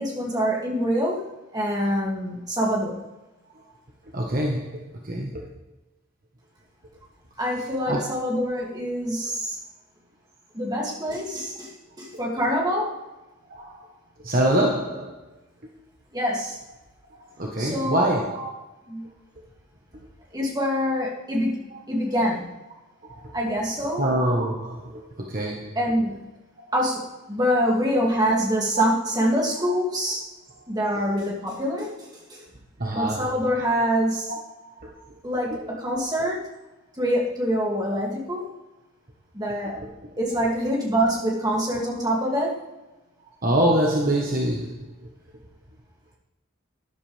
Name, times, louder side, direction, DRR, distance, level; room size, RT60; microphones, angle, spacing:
voice 1, 0.0-3.0 7.4-9.6 10.5-13.0 16.1-16.6 17.6-18.1 18.9-19.0 20.3-22.5 23.3-24.1 25.8-26.2 26.7-30.2 30.7-32.4 32.9-34.3 35.2-36.4 36.9-38.5 39.3-39.8 40.2-42.6, equal, 20° right, -3 dB, 2.6 m, -25 dB
voice 2, 4.0-5.5 7.9-8.1 13.5-13.9 14.2-15.2 15.6-15.7 17.1-18.5 21.7-21.8 23.0-23.4 24.0-25.8 28.8-28.9 32.8-33.3 34.6-35.0 35.5-35.8 43.4-44.9, right 1 dB, 40° right, -1 dB, 1.4 m, -25 dB
13.0 x 11.0 x 3.5 m, 1.1 s
head